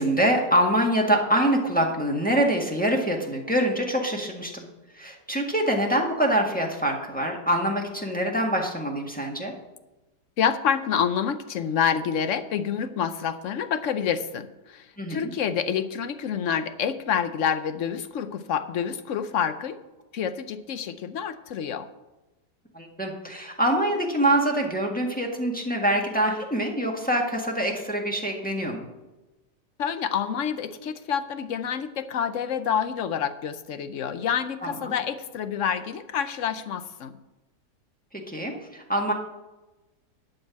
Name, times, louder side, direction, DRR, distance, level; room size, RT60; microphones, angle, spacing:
voice 1, 0.0-4.6 4.9-9.5 15.0-15.3 22.7-28.9 34.6-34.9 38.1-39.1, right 1 dB, 5° left, 0 dB, 1.5 m, -25 dB
voice 2, 10.4-19.8 20.1-21.9 29.8-37.2, left 8 dB, 60° left, 11 dB, 0.9 m, -28 dB
11.5 x 5.4 x 8.3 m, 1.1 s
omnidirectional pair, 1.8 m